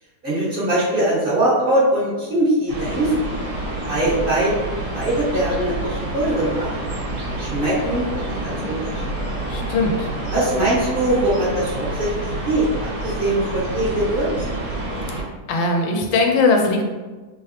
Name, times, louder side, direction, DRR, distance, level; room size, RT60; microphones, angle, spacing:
voice 1, 0.2-3.1 3.8-4.5 4.9-6.7 7.4-8.1 8.4-9.0 10.3-12.7 13.2-14.3, right 1 dB, 30° right, -8 dB, 1.4 m, -21 dB
sound 1, 2.7-15.2, right 1 dB, 50° right, 1.5 m, -28 dB
voice 2, 9.5-10.1 15.5-16.8, left 3 dB, 85° left, 2 dB, 1.4 m, -19 dB
4.7 x 3.4 x 3.1 m, 1.3 s
omnidirectional pair, 2.0 m